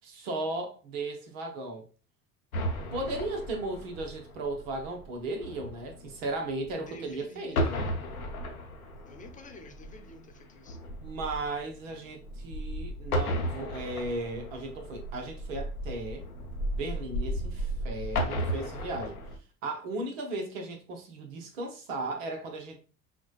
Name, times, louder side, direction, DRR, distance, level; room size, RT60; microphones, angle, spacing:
voice 1, 0.0-1.8 2.9-7.9 11.0-16.3 16.7-19.2 19.6-22.8, right 2 dB, 65° right, 1.0 m, -36 dB
sound 1, 2.5-7.1 7.4-19.4, equal, 85° left, 0.7 m, -35 dB
voice 2, 6.7-7.7 9.1-10.8, left 1 dB, 20° left, 0.9 m, -49 dB
5.9 x 2.2 x 2.3 m
figure-of-eight pair, 65°, 42 cm